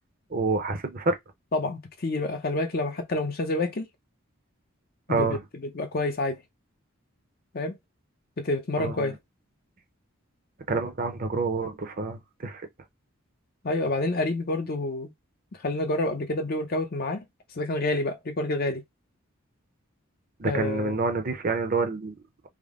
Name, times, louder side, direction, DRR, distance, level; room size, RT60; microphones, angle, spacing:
voice 1, 0.3-1.2 5.1-5.4 8.8-9.1 10.7-12.6 20.4-22.2, right 3 dB, 40° right, 0.6 m, -27 dB
voice 2, 1.5-3.9 5.1-6.4 7.5-7.8 8.4-9.2 13.6-15.1 15.6-17.3 17.5-18.8 20.5-21.0, left 2 dB, 45° left, 0.6 m, -28 dB
3.5 x 2.1 x 3.6 m
head